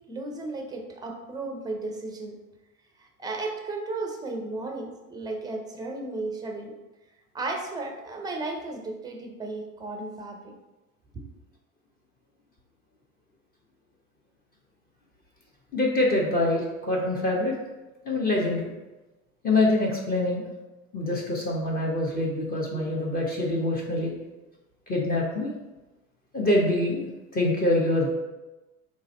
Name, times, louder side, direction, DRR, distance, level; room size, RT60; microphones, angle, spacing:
voice 1, 0.1-2.4 3.0-6.8 7.3-10.5, right 2 dB, 10° right, 3 dB, 0.5 m, -34 dB
voice 2, 15.7-17.5 18.0-18.7 19.4-20.5 20.9-24.1 24.9-25.5 26.3-28.1, left 2 dB, 20° left, -2 dB, 0.9 m, -25 dB
3.9 x 3.1 x 4.0 m, 1.1 s
hypercardioid pair, 85°, 44 cm